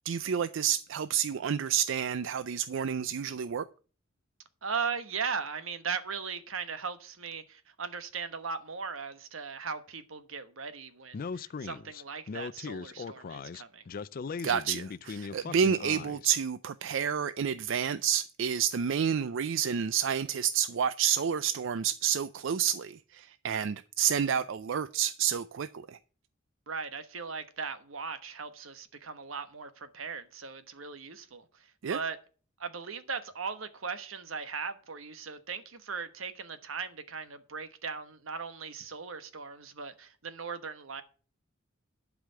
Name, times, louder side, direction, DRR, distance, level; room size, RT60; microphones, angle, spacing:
voice 1, 0.1-3.6 14.4-26.0 31.8-32.0, right 8 dB, 65° right, 0.4 m, -29 dB
voice 2, 4.6-13.8 26.7-32.2 32.6-41.0, right 5 dB, 90° right, 1.2 m, -38 dB
Speech, 11.1-16.3, left 5 dB, 45° left, 0.4 m, -39 dB
11.5 x 5.0 x 7.6 m
head